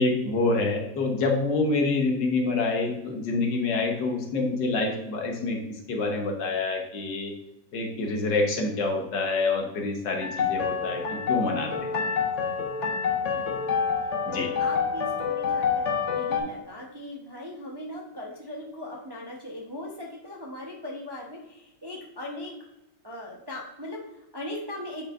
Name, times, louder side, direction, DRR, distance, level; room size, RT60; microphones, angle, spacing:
voice 1, 0.0-5.6 5.9-7.3 7.7-11.0 11.3-11.9 14.3-14.5, left 3 dB, 75° left, 2 dB, 1.7 m, -26 dB
happy piano, 10.2-16.4, left 6 dB, 50° left, 1.1 m, -27 dB
voice 2, 13.2-13.7 14.3-22.5 23.0-25.1, left 1 dB, 25° right, -2 dB, 0.5 m, -39 dB
7.7 x 5.4 x 2.5 m, 0.88 s
omnidirectional pair, 1.9 m